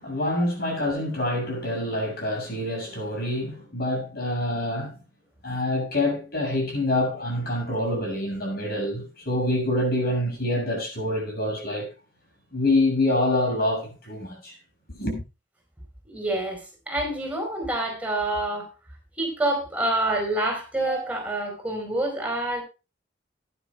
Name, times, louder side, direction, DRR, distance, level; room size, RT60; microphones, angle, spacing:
voice 1, 0.0-5.0 5.4-11.9 12.5-14.5 14.9-15.2, left 1 dB, 55° left, 6.7 m, -26 dB
voice 2, 16.0-18.7 19.2-22.6, right 1 dB, 10° right, 4.5 m, -27 dB
19.5 x 10.5 x 2.2 m
head